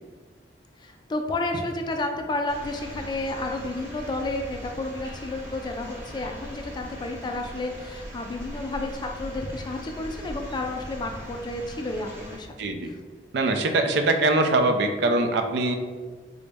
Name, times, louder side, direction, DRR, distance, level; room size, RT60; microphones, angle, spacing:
voice 1, 0.8-12.5 12.8-12.9, left 2 dB, 25° left, 3 dB, 0.3 m, -31 dB
sound 1, 2.5-12.4, equal, 15° right, 0.8 m, -40 dB
voice 2, 12.6-12.9 13.3-15.8, right 2 dB, 70° right, 6 dB, 0.4 m, -22 dB
3.8 x 2.1 x 3.4 m, 1.5 s
head